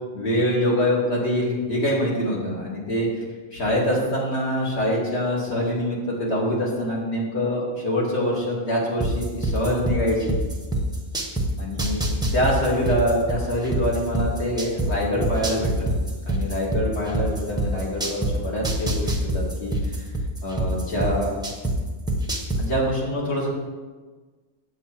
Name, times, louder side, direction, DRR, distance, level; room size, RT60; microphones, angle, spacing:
voice 1, 0.1-3.1 3.5-10.4 11.6-12.0 12.3-15.9 16.3-19.7 20.4-21.3 22.6-23.5, equal, 45° left, -4 dB, 2.5 m, -25 dB
sound 1, 9.0-11.4 11.8-14.9 15.2-18.3 18.6-21.7 22.1-22.6, right 2 dB, 5° right, 0.9 m, -24 dB
8.5 x 7.7 x 4.5 m, 1.3 s
omnidirectional pair, 1.7 m